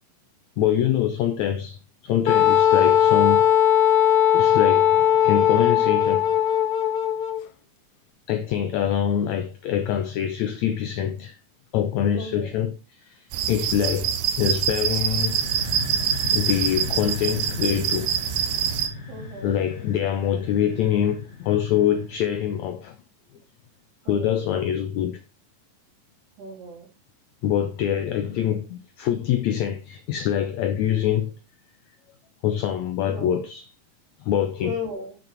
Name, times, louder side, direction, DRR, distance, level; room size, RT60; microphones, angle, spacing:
voice 1, 0.6-3.5 4.3-6.3 8.3-11.4 11.7-12.7 13.0-15.4 16.3-18.1 19.4-22.9 24.1-25.2 27.4-31.3 32.4-33.7 34.2-34.8, left 10 dB, 90° left, 1.6 m, -25 dB
Wind instrument woodwind instrument, 2.3-7.4, left 9 dB, 70° left, 1.9 m, -18 dB
voice 2, 12.1-12.5 19.1-19.5 24.1-24.3 26.4-26.9 33.1-33.3 34.6-35.2, left 2 dB, 70° right, 3.7 m, -35 dB
sound 1, 13.3-18.9, right 9 dB, 85° right, 2.8 m, -25 dB
sound 2, 15.0-22.6, left 4 dB, 30° left, 1.2 m, -37 dB
9.1 x 6.1 x 4.4 m
omnidirectional pair, 4.1 m